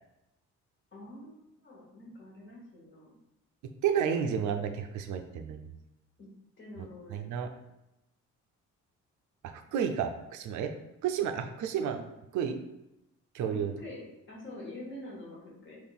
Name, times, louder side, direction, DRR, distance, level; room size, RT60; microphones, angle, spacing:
voice 1, 0.9-3.1 6.2-6.3 6.6-7.2 13.4-15.8, left 1 dB, 40° left, -4 dB, 1.4 m, -46 dB
voice 2, 3.8-5.7 7.1-7.5 9.4-10.7 11.0-12.0 12.3-12.6 13.3-13.7, right 8 dB, 75° right, 6 dB, 0.5 m, -31 dB
3.6 x 2.5 x 4.0 m, 0.90 s
cardioid pair, 90°, 30 cm